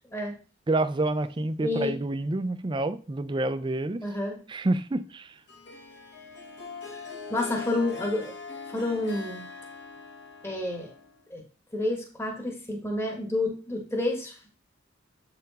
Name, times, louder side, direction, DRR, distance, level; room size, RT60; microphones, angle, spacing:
voice 1, 0.7-4.0 4.5-5.3, right 2 dB, 25° right, 0.4 m, -28 dB
voice 2, 1.6-2.0 4.0-4.4 6.9-8.3 8.7-9.5 10.4-10.9 11.3-11.4 11.7-14.4, left 2 dB, 10° left, 1.3 m, -30 dB
Harp, 5.5-11.3, left 4 dB, 60° left, 1.5 m, -41 dB
7.6 x 4.4 x 4.1 m
head